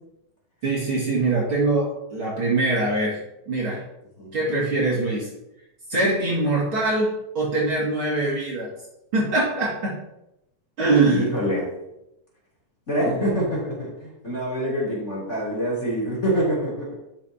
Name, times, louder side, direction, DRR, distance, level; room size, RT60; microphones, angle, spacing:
voice 1, 0.6-3.2 3.5-3.8 4.3-5.3 5.9-8.7 9.1-10.0 10.8-11.3, right 2 dB, 45° right, -6 dB, 3.1 m, -23 dB
voice 2, 11.0-11.7 12.9-17.0, equal, 20° left, -5 dB, 3.4 m, -25 dB
12.5 x 7.4 x 2.9 m, 0.87 s
omnidirectional pair, 3.5 m